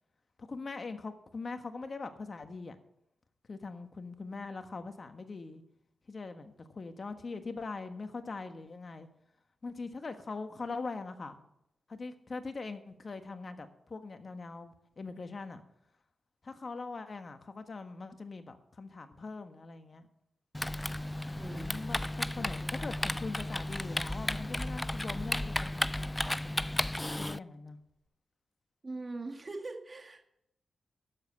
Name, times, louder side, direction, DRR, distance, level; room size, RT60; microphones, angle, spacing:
voice 1, 0.4-2.8 3.5-5.6 6.1-9.1 9.6-11.4 11.9-15.6 16.4-20.1 21.5-26.1 27.1-27.8, left 3 dB, 50° left, 8 dB, 1.4 m, -42 dB
Typing, 20.5-27.4, left 1 dB, 15° left, 0.3 m, -34 dB
voice 2, 21.3-21.8 28.8-30.3, right 3 dB, 40° right, 5 dB, 1.9 m, -41 dB
Purr, 24.2-27.1 27.9-28.0, left 2 dB, 30° left, 4.3 m, -56 dB
11.5 x 7.4 x 7.0 m, 0.81 s
supercardioid pair, 45°, 0 cm